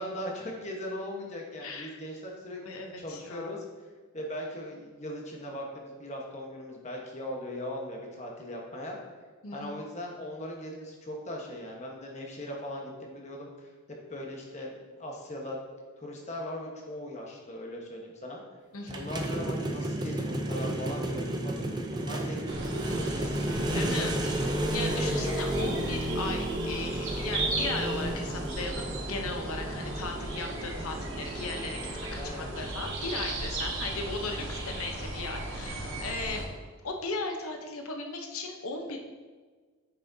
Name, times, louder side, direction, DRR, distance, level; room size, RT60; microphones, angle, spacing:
voice 1, 0.0-3.6 4.1-9.0 9.5-13.7 14.1-15.6 16.0-18.4 18.9-24.5 32.1-32.5, left 1 dB, 30° left, -1 dB, 1.2 m, -39 dB
voice 2, 1.6-2.0 2.6-3.6 9.4-9.8 18.7-19.1 23.7-31.8 32.1-36.4 36.8-39.0, left 3 dB, 80° left, 3 dB, 0.8 m, -37 dB
sound 1, 18.9-33.2, right 1 dB, 20° right, 0.5 m, -33 dB
sound 2, 22.5-36.5, right 2 dB, 60° right, 1.3 m, -36 dB
8.3 x 6.5 x 2.7 m, 1.4 s
head